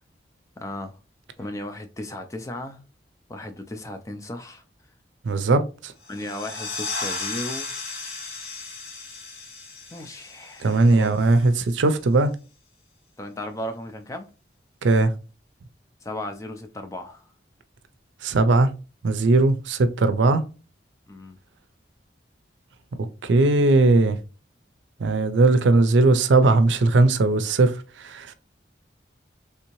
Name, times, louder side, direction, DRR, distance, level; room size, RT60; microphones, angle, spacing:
voice 1, 0.6-1.0 1.4-2.8 3.3-4.6 6.1-7.7 9.9-11.1 13.2-14.3 16.0-17.2 21.1-21.4, left 1 dB, 15° left, 0.4 m, -35 dB
voice 2, 5.2-5.9 10.6-12.4 14.8-15.1 18.2-18.7 19.0-20.4 22.9-24.2 25.0-28.3, right 2 dB, 85° right, 0.4 m, -19 dB
sound 1, 6.0-11.4, left 3 dB, 55° left, 2.0 m, -35 dB
3.4 x 2.7 x 2.9 m
head